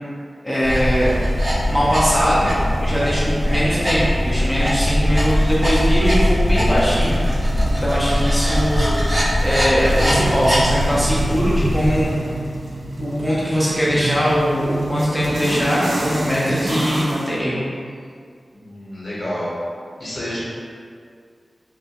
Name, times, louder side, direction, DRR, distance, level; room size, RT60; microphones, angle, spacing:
voice 1, 0.4-1.1 1.7-2.5 2.8-8.9 9.4-12.1 13.0-17.6, equal, 5° left, -9 dB, 0.6 m, -21 dB
sound 1, 0.6-12.1, equal, 50° right, 0.7 m, -20 dB
sound 2, 5.2-17.3, right 1 dB, 85° right, 0.3 m, -28 dB
voice 2, 18.5-19.5 20.0-20.4, equal, 55° left, -9 dB, 0.9 m, -29 dB
2.2 x 2.1 x 2.8 m, 2.2 s
cardioid pair, 45°, 0 cm